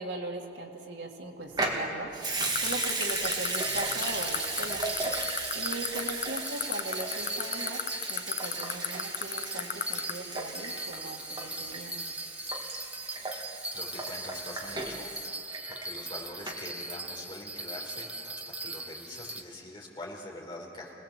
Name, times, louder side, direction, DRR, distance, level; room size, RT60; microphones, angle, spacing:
voice 1, 0.0-4.8 5.5-7.8 8.1-12.0, right 2 dB, 80° right, 0 dB, 2.3 m, -39 dB
Water tap faucet / Sink (filling or washing) / Liquid, 1.5-16.2 16.5-16.6, right 2 dB, 25° right, 2.1 m, -35 dB
sound 1, 2.4-10.1, left 10 dB, 45° left, 0.7 m, -29 dB
Bell, 3.1-19.4, right 2 dB, 5° right, 0.8 m, -40 dB
voice 2, 13.7-15.1 15.7-20.9, left 1 dB, 30° left, -2 dB, 4.5 m, -44 dB
26.5 x 19.0 x 7.6 m, 2.7 s
head